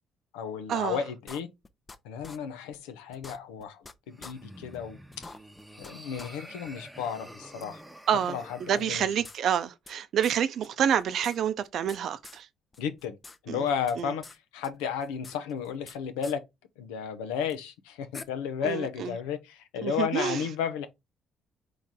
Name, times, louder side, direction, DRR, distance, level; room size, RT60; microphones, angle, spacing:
voice 1, 0.3-1.5 2.0-5.3 5.8-7.8 8.3-9.1 12.8-13.2 13.4-14.2 14.5-16.4 16.8-20.9, left 7 dB, 90° left, 0.6 m, -33 dB
sound 1, 1.3-2.0 2.2-2.4 2.7-2.8 3.1-3.9 4.2-4.3 4.7-4.8 5.1-5.9 6.2-6.3 6.7-6.8 7.6-7.7 8.7-9.9 10.2-10.4 10.6-10.7 11.0-12.0 12.2-12.4 12.7-13.4 13.6-14.4 14.6-16.0 16.2-16.4 17.5-17.6 18.1-18.2, left 3 dB, 30° left, 0.6 m, -46 dB
sound 2, 4.1-8.8, equal, 5° right, 0.9 m, -48 dB
voice 2, 8.1-12.5 13.5-13.6 14.0-14.1 18.6-19.1 19.8-20.4, right 9 dB, 65° right, 0.5 m, -28 dB
4.1 x 3.2 x 3.6 m
supercardioid pair, 65°, 0 cm